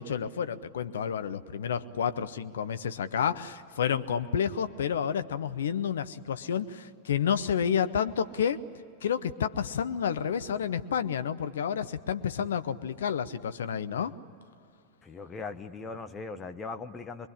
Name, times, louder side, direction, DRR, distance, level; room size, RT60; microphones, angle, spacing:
voice 1, 0.0-8.6 9.0-14.1, left 8 dB, 65° left, 12 dB, 0.8 m, -30 dB
voice 2, 15.0-17.3, left 4 dB, 20° left, 7 dB, 1.0 m, -39 dB
24.0 x 23.0 x 9.8 m, 2.4 s
figure-of-eight pair, 90°, 0 cm